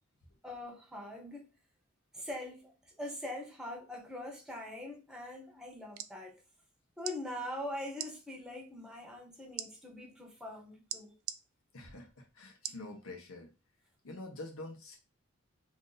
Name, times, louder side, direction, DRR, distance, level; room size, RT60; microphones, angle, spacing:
voice 1, 0.4-1.5 2.1-6.4 7.0-11.2, left 1 dB, 5° right, 0.6 m, -43 dB
sound 1, 5.7-6.1 7.0-7.2 7.9-8.1 9.6-9.7 10.9-11.4 12.6-12.9 13.4-13.5, right 12 dB, 80° right, 0.3 m, -39 dB
voice 2, 11.7-13.5 14.0-15.0, left 2 dB, 85° left, 0.8 m, -46 dB
2.6 x 2.5 x 3.8 m
head